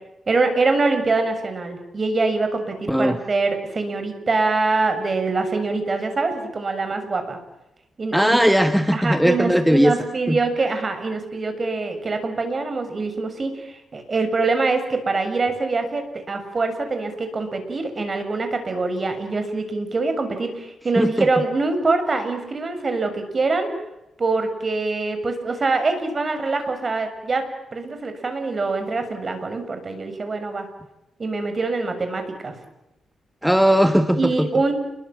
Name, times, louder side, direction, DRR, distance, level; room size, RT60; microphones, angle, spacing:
voice 1, 0.3-7.4 8.0-8.4 8.9-23.7 24.2-27.4 27.7-30.7 31.2-32.5 34.1-34.7, right 3 dB, 35° right, 7 dB, 6.9 m, -24 dB
voice 2, 8.1-9.9 10.3-10.4 21.0-21.3 33.4-34.5, equal, ahead, 8 dB, 1.5 m, -18 dB
29.5 x 23.0 x 7.7 m, 0.89 s
cardioid pair, 110°, 0 cm